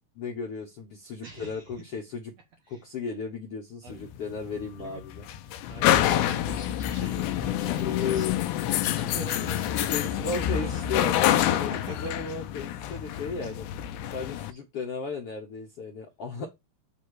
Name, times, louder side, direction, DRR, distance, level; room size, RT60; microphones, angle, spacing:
voice 1, 0.1-2.3 2.7-5.2 7.8-8.3 9.9-13.7 14.1-16.5, left 5 dB, 65° left, 1.5 m, -35 dB
voice 2, 1.2-1.7 2.7-2.8 3.8-4.1 4.8-5.0 5.7-8.4 8.8-12.0 14.5-14.6, right 6 dB, 65° right, 1.7 m, -44 dB
sound 1, 3.9-14.5, left 12 dB, 85° left, 2.6 m, -27 dB
8.4 x 3.0 x 6.3 m
omnidirectional pair, 4.3 m